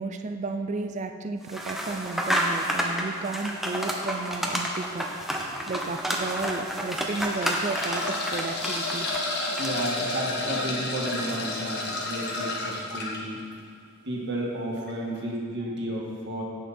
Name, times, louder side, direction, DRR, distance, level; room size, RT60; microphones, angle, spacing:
voice 1, 0.0-9.1, right 3 dB, 30° right, 6 dB, 0.4 m, -33 dB
sound 1, 1.5-10.0, equal, ahead, 0.8 m, -30 dB
sound 2, 4.9-5.1 5.7-5.8 6.8-13.2 14.8-14.9 15.2-15.3, left 2 dB, 45° left, 1.6 m, -31 dB
voice 2, 9.6-13.4 14.1-16.4, right 1 dB, 50° right, -3 dB, 1.9 m, -32 dB
16.0 x 5.8 x 4.3 m, 2.4 s
head